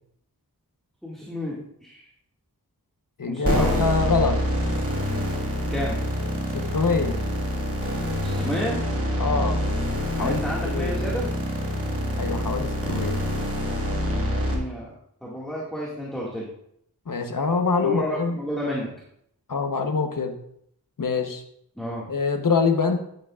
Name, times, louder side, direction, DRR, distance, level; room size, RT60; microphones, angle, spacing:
voice 1, 1.0-2.0 3.3-3.8 5.7-5.9 8.2-8.8 10.2-11.3 14.5-14.9 15.2-16.5 17.8-18.9 21.8-22.1, equal, ahead, -5 dB, 2.0 m, -31 dB
voice 2, 3.2-4.4 6.5-7.2 9.2-9.6 10.2-11.0 12.2-13.2 17.1-18.4 19.5-20.4 21.0-21.4 22.1-23.0, left 4 dB, 60° left, 5 dB, 1.1 m, -25 dB
sound 1, 3.4-14.5, equal, 40° right, 2.0 m, -26 dB
10.5 x 9.0 x 2.5 m, 0.72 s
wide cardioid pair, 80°, 37 cm